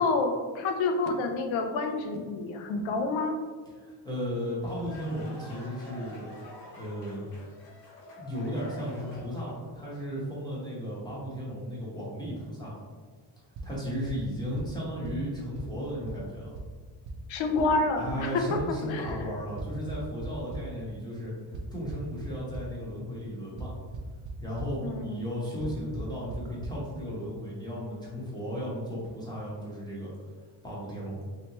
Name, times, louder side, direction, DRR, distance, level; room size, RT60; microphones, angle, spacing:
voice 1, 0.0-3.4 17.3-18.6 18.9-19.2 24.8-25.2, left 3 dB, 85° left, 5 dB, 0.6 m, -28 dB
voice 2, 3.8-6.3 6.7-7.3 8.2-12.8 13.6-16.5 18.0-23.7 24.4-30.1 30.6-31.2, equal, 10° left, -7 dB, 0.8 m, -35 dB
sound 1, 4.4-9.7, left 1 dB, 60° left, 1.0 m, -47 dB
sound 2, 13.6-13.7 14.1-14.2 14.6-14.7 15.0-15.1 15.6-15.7 16.1-16.2 16.6-16.7 17.1-17.2 17.6-17.7 18.1-18.2 18.6-18.7 19.1-19.2 19.6-20.6 21.5-22.6 23.6-23.7 23.9-24.3 24.6-24.7 25.6-25.7 26.0-26.1 26.3-26.4 26.6-26.7, right 4 dB, 45° right, 0.5 m, -37 dB
3.2 x 2.8 x 2.9 m, 1.5 s
cardioid pair, 135°, 46 cm